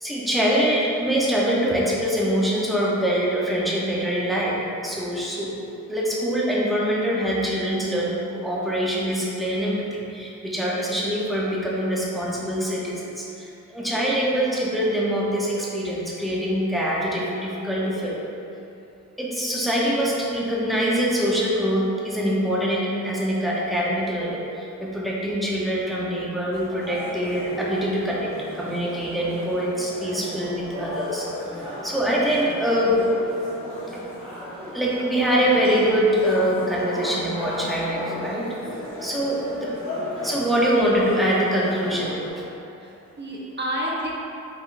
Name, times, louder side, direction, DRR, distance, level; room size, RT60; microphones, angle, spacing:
voice 1, 0.0-4.6 4.8-5.5 5.9-18.2 19.2-28.3 28.5-31.3 31.8-33.0 33.9-34.0 34.7-38.5 39.0-39.7 40.2-42.4, equal, ahead, -6 dB, 1.0 m, -24 dB
sound 1, 26.5-42.3, left 1 dB, 40° left, 1.5 m, -35 dB
voice 2, 42.6-44.1, equal, 35° right, -5 dB, 1.1 m, -30 dB
5.2 x 3.6 x 2.7 m, 2.8 s
cardioid pair, 60°, 33 cm